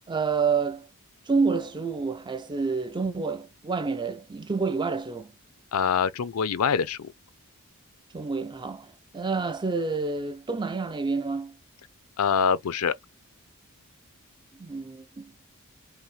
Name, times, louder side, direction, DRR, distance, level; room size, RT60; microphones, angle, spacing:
voice 1, 0.1-0.9 1.3-5.3 8.1-11.6 14.6-15.3, right 4 dB, 20° right, 0.4 m, -28 dB
voice 2, 5.7-7.1 12.2-12.9, left 6 dB, 70° left, 0.5 m, -24 dB
5.6 x 2.1 x 3.1 m
head